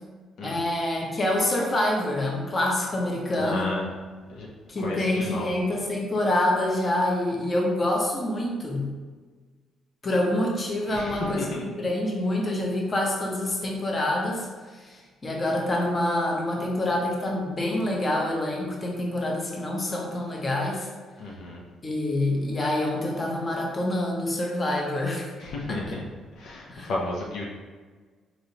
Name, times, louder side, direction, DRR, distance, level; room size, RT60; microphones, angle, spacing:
voice 1, 0.4-3.7 4.7-8.9 10.0-14.5 14.8-20.9 21.8-25.3 25.7-26.0 26.7-26.9, left 1 dB, 30° left, -1 dB, 0.8 m, -26 dB
voice 2, 3.4-3.9 4.3-4.5 4.8-5.5 10.9-11.6 21.2-21.6 25.4-26.0 26.4-27.5, left 2 dB, 70° left, -2 dB, 0.7 m, -32 dB
4.0 x 3.1 x 2.8 m, 1.4 s
cardioid pair, 110°, 0 cm